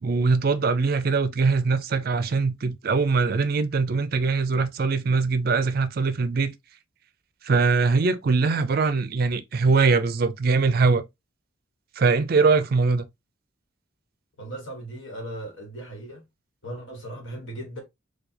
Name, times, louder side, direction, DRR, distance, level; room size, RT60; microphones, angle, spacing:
voice 1, 0.0-6.5 7.4-11.0 12.0-13.1, right 4 dB, 50° right, 0.4 m, -22 dB
voice 2, 14.4-16.2 16.6-17.8, right 1 dB, 70° left, 1.3 m, -37 dB
4.6 x 2.3 x 2.7 m
head